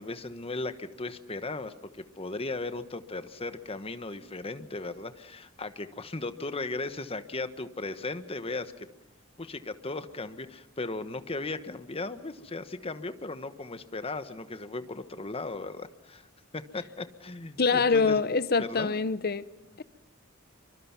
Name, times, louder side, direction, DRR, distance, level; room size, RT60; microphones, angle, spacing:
voice 1, 0.0-8.9 9.4-16.3 16.5-18.2 18.6-18.9, left 3 dB, 30° left, 1.2 m, -37 dB
voice 2, 17.6-19.4, left 4 dB, 50° left, 0.8 m, -25 dB
26.5 x 24.5 x 6.0 m
head